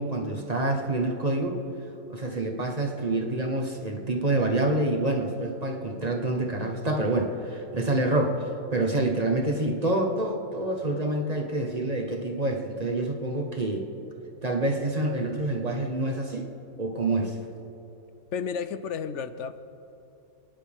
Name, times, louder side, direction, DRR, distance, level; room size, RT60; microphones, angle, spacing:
voice 1, 0.0-1.6 2.1-8.4 8.7-13.9 14.4-16.5 16.8-17.4, right 2 dB, 30° right, 1 dB, 1.1 m, -27 dB
voice 2, 18.3-19.6, left 6 dB, 60° left, 11 dB, 0.8 m, -32 dB
30.0 x 10.5 x 3.6 m, 2.9 s
omnidirectional pair, 1.7 m